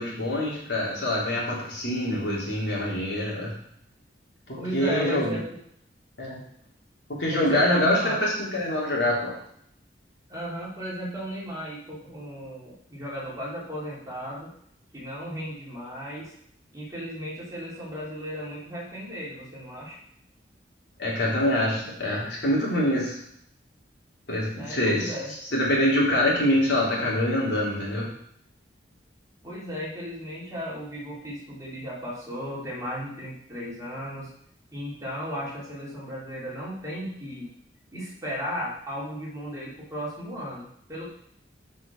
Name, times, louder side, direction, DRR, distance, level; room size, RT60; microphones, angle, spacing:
voice 1, 0.0-3.5 4.5-5.4 6.2-6.4 7.2-9.4 21.0-23.2 24.3-25.1 25.5-28.1, left 1 dB, 70° left, -4 dB, 3.5 m, -25 dB
voice 2, 4.6-5.5 7.3-8.2 10.3-14.5 14.9-16.3 16.7-20.0 24.5-25.3 29.4-34.3 34.7-37.5 37.9-41.1, equal, 20° right, -5 dB, 3.0 m, -35 dB
7.0 x 6.1 x 6.2 m, 0.69 s
head